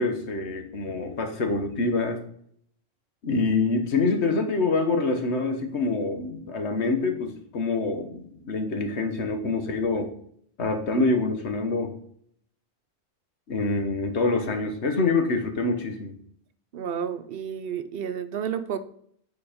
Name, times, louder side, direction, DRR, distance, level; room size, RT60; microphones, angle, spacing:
voice 1, 0.0-2.2 3.2-10.1 10.6-11.9 13.5-16.1, left 3 dB, 85° left, 1.4 m, -26 dB
voice 2, 16.7-18.8, right 8 dB, 65° right, 0.8 m, -31 dB
8.7 x 4.5 x 5.0 m
omnidirectional pair, 1.1 m